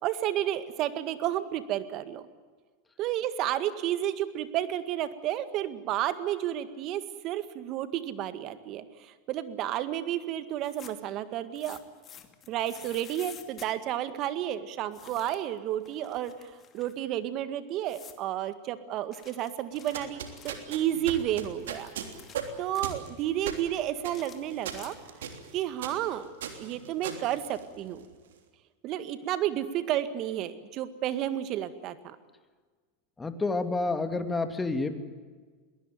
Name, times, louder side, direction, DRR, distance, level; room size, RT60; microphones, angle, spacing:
voice 1, 0.0-2.2 3.0-11.8 12.5-21.9 22.6-25.0 25.5-26.3 26.6-28.0 28.8-32.2, right 12 dB, 45° right, 12 dB, 1.9 m, -31 dB
sound 1, 10.5-11.1 11.6-13.7 14.9-15.5 15.8-17.0 17.9-18.2 19.1-20.7 21.4-23.0 24.0-25.3, left 8 dB, 35° left, 2.6 m, -50 dB
sound 2, 19.7-28.1, right 7 dB, 80° right, 3.3 m, -39 dB
voice 2, 33.2-35.0, left 3 dB, 15° left, 8 dB, 2.6 m, -29 dB
22.0 x 19.0 x 9.2 m, 1.5 s
hypercardioid pair, 105°, 0 cm